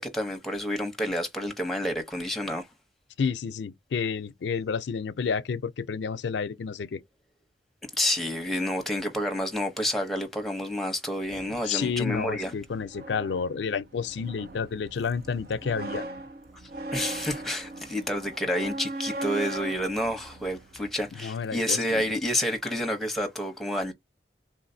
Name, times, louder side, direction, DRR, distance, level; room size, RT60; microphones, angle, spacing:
voice 1, 0.0-2.7 8.0-12.5 16.9-23.9, left 1 dB, ahead, 0.8 m, -29 dB
voice 2, 3.2-7.0 11.5-16.0 21.2-22.1, left 6 dB, 80° left, 0.4 m, -30 dB
sound 1, 11.2-21.2, right 2 dB, 55° right, 0.8 m, -39 dB
3.6 x 2.5 x 2.6 m
head